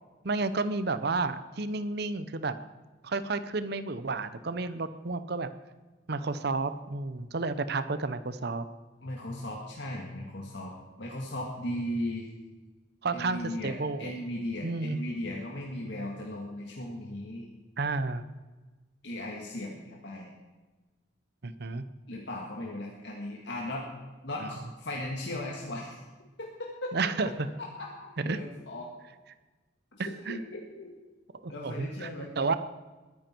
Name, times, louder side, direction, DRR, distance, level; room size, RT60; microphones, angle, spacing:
voice 1, 0.2-2.5 3.0-5.5 6.1-8.7 13.0-14.1 14.6-15.0 17.8-18.3 21.4-21.8 26.9-27.5 28.2-28.4 30.0-30.4 31.4-32.1 32.4-32.5, right 3 dB, 60° right, 12 dB, 0.8 m, -31 dB
voice 2, 9.0-12.3 13.1-17.5 19.0-20.3 22.1-23.9 24.2-26.0 26.4-27.0 27.2-27.3 27.8-28.9 29.9-30.9 31.5-32.3, left 1 dB, 65° left, -1 dB, 2.0 m, -37 dB
21.0 x 10.5 x 4.5 m, 1.2 s
head